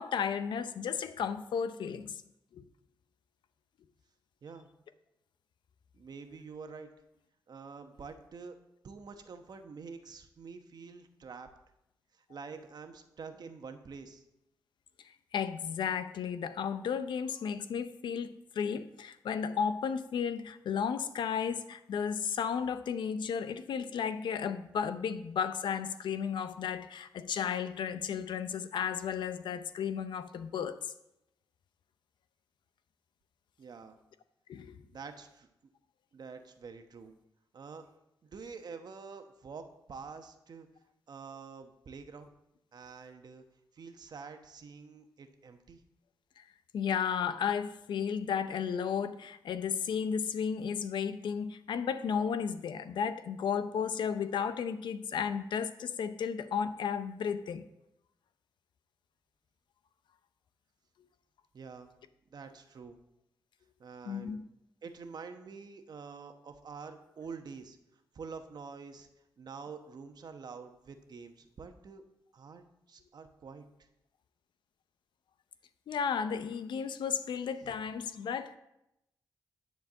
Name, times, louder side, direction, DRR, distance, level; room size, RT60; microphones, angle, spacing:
voice 1, 0.0-2.2 2.5-2.6 15.3-30.8 34.5-34.8 46.4-46.5 46.7-57.6 64.1-64.4 75.9-78.6, left 7 dB, 85° left, 0.6 m, -33 dB
voice 2, 5.9-6.9 7.5-8.5 8.8-11.5 12.2-14.2 33.6-34.0 34.9-35.5 36.1-37.1 37.5-37.8 38.2-40.7 41.1-42.3 42.7-43.4 43.7-45.8 61.5-61.9 62.3-63.0 63.8-64.5 64.8-67.8 68.1-69.1 69.4-72.0 72.3-73.6, right 5 dB, 60° right, 1.1 m, -47 dB
10.5 x 4.6 x 7.3 m
cardioid pair, 90°, 8 cm